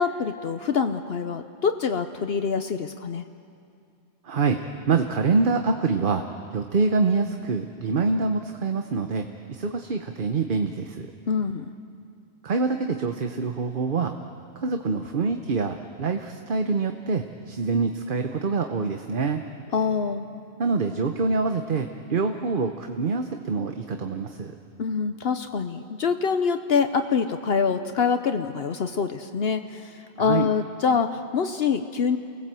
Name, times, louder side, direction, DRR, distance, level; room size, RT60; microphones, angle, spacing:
voice 1, 0.0-3.2 11.3-11.7 19.7-20.3 24.8-32.2, left 6 dB, 65° left, 8 dB, 1.0 m, -25 dB
voice 2, 4.2-4.6 4.9-6.2 6.5-11.1 12.4-14.1 14.6-19.4 20.6-24.5 30.2-30.5, right 4 dB, 50° right, 5 dB, 1.0 m, -25 dB
28.5 x 20.0 x 7.6 m, 2.4 s
omnidirectional pair, 1.1 m